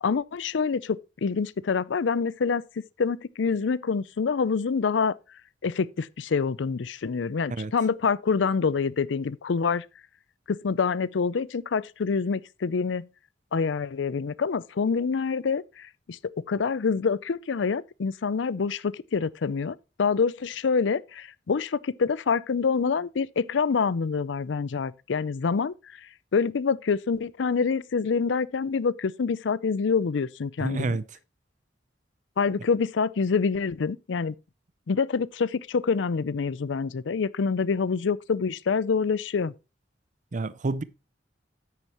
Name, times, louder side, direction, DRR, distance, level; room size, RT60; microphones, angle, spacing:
voice 1, 0.0-2.6 3.0-5.1 5.6-9.9 10.5-13.1 13.5-16.2 16.5-25.7 26.3-31.0 32.4-34.3 34.9-39.5, left 5 dB, 85° left, 0.5 m, -26 dB
voice 2, 30.6-31.0 40.3-40.8, right 3 dB, 45° right, 0.5 m, -28 dB
9.5 x 9.1 x 3.0 m
head